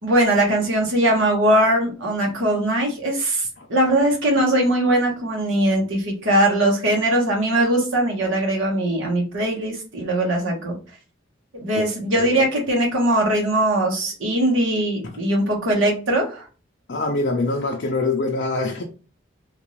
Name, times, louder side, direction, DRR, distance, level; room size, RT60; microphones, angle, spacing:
voice 1, 0.0-10.7 11.5-16.4, right 1 dB, 80° right, -1 dB, 1.4 m, -20 dB
voice 2, 12.1-12.5 16.9-18.8, left 3 dB, 60° left, 1 dB, 0.5 m, -24 dB
3.6 x 2.5 x 3.1 m, 0.36 s
head